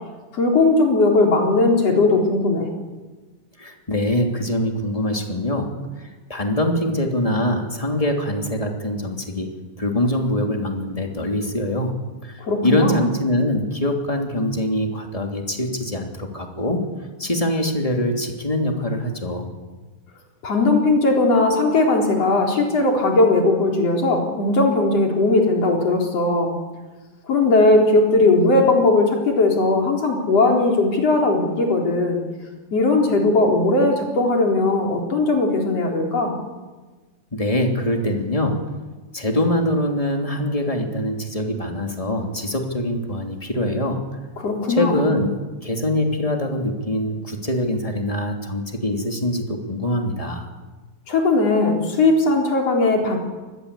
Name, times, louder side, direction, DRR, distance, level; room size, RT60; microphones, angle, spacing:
voice 1, 0.3-2.7 12.4-13.0 20.4-26.5 27.3-32.2 32.7-36.4 44.4-45.0 51.1-53.2, left 2 dB, 45° left, 1 dB, 5.0 m, -18 dB
voice 2, 3.6-9.5 9.8-12.0 12.2-16.8 17.2-19.5 37.3-38.8 39.1-44.0 44.7-45.3 45.6-50.5, left 1 dB, 10° left, 3 dB, 2.5 m, -23 dB
26.0 x 21.0 x 8.4 m, 1.3 s
omnidirectional pair, 4.2 m